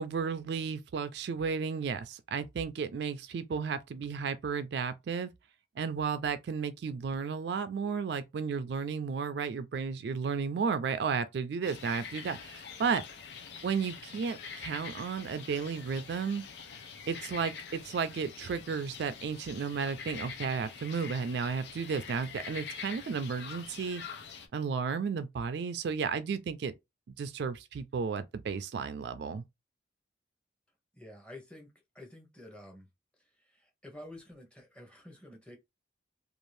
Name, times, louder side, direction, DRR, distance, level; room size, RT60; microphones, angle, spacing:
voice 1, 0.0-5.3 5.8-13.0 13.6-16.4 17.1-24.0 24.5-26.7 27.1-29.4, right 5 dB, 65° right, 0.3 m, -33 dB
sound 1, 11.6-24.5, left 6 dB, 65° left, 0.5 m, -45 dB
voice 2, 30.9-32.9 33.2-35.6, left 1 dB, 5° left, 0.8 m, -50 dB
2.6 x 2.4 x 3.2 m
head